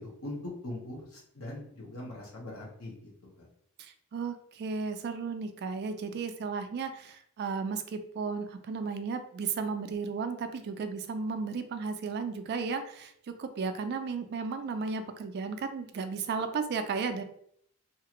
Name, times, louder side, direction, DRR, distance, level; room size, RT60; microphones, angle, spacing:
voice 1, 0.0-3.5, left 1 dB, 65° left, -2 dB, 0.9 m, -41 dB
voice 2, 3.8-17.2, right 5 dB, 45° right, 9 dB, 0.3 m, -34 dB
2.8 x 2.4 x 2.9 m, 0.67 s
head